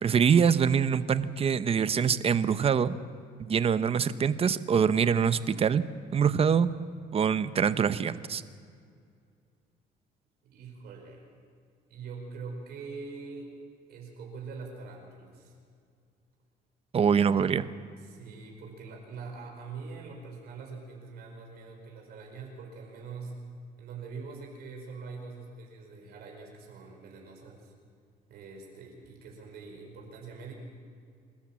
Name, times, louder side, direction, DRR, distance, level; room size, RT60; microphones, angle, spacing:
voice 1, 0.0-3.0 3.4-5.8 6.1-6.7 7.1-8.4 16.9-17.7, right 7 dB, 35° right, 13 dB, 0.8 m, -24 dB
voice 2, 10.4-11.3 11.9-13.5 13.9-15.5 18.0-23.4 23.8-27.7 28.3-30.5, right 4 dB, 70° right, 1 dB, 5.1 m, -43 dB
28.0 x 13.5 x 7.5 m, 2.2 s
cardioid pair, 110°, 17 cm